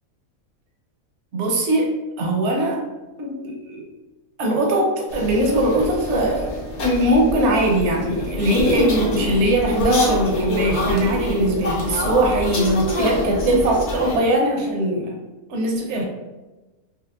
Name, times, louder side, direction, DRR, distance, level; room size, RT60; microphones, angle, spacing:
voice 1, 1.3-2.8 3.2-3.9 4.4-15.2 15.5-16.0, right 1 dB, 60° right, 0 dB, 0.9 m, -21 dB
sound 1, 5.1-14.2, left 1 dB, 60° left, 1.0 m, -25 dB
5.6 x 2.1 x 2.4 m, 1.1 s
omnidirectional pair, 1.5 m